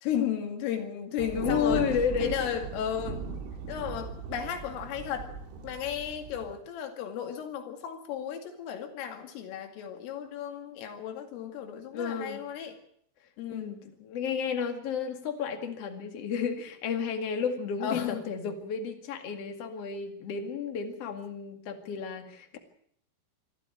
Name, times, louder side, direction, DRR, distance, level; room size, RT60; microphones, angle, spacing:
voice 1, 0.0-1.9 2.2-3.3 3.7-5.3 5.6-12.8 13.4-13.7 17.8-18.2, left 9 dB, 80° left, 6 dB, 4.8 m, -34 dB
Thunder, 1.2-6.5, right 4 dB, 70° right, 5.2 m, -38 dB
voice 2, 1.3-2.5 11.9-12.4 13.5-22.6, left 6 dB, 45° left, 6 dB, 2.2 m, -32 dB
25.0 x 13.0 x 8.9 m, 0.66 s
omnidirectional pair, 5.8 m